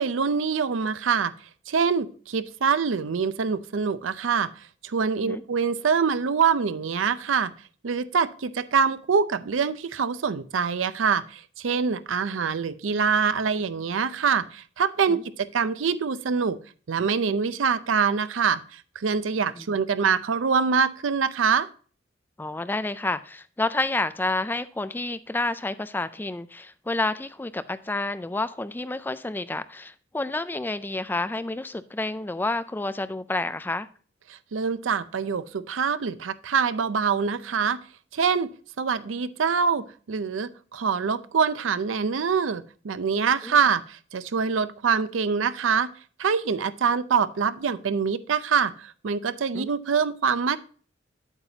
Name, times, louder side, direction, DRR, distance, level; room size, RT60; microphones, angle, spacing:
voice 1, 0.0-1.3 1.7-4.5 4.8-7.5 7.8-16.6 16.9-21.7 34.3-37.8 38.1-38.5 38.8-45.9 46.2-50.6, right 6 dB, 90° right, 0.5 m, -25 dB
voice 2, 22.4-33.9 43.4-43.6 49.5-49.7, left 2 dB, 10° left, 0.3 m, -29 dB
8.9 x 8.1 x 2.8 m
head